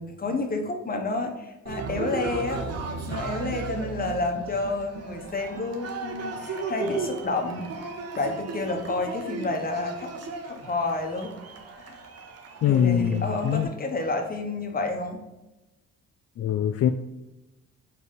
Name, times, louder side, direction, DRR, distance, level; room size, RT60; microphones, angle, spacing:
voice 1, 0.0-2.7 3.1-7.7 8.1-10.1 10.4-11.4 11.8-12.0 12.7-15.2, left 3 dB, 30° left, 4 dB, 1.1 m, -30 dB
Cheering, 1.7-13.7, right 4 dB, 55° right, 0.9 m, -35 dB
voice 2, 12.6-13.7 16.4-16.9, left 9 dB, 50° left, 8 dB, 0.4 m, -23 dB
4.6 x 4.2 x 5.2 m, 0.99 s
cardioid pair, 90°, 30 cm